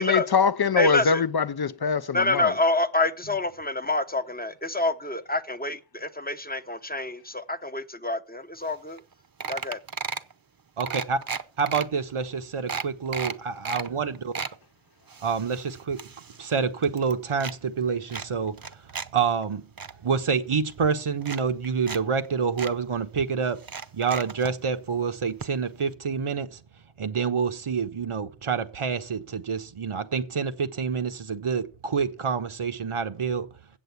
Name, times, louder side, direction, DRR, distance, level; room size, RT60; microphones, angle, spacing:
voice 1, 0.0-2.5, left 5 dB, 50° left, 0.6 m, -23 dB
voice 2, 0.8-1.2 2.1-9.0 9.5-9.8, left 2 dB, 20° left, 0.8 m, -27 dB
sound 1, 8.7-8.8 9.0-9.1 9.4-10.3 10.8-11.8 12.3-12.4 12.7-13.9 14.1-14.6 15.1-16.6 16.8-17.6 18.1-19.1 19.4-19.9 20.7-20.8 21.2-22.0 22.2-22.3 22.6-22.7 23.6-24.5 25.4-25.5 25.8-25.9, right 5 dB, 45° right, 0.8 m, -34 dB
voice 3, 10.8-11.2 11.6-14.3 15.2-16.0 16.4-18.7 19.1-19.7 20.0-23.6 23.9-26.6 27.0-33.5, right 6 dB, 85° right, 1.1 m, -27 dB
8.0 x 7.7 x 8.0 m
wide cardioid pair, 65°, 49 cm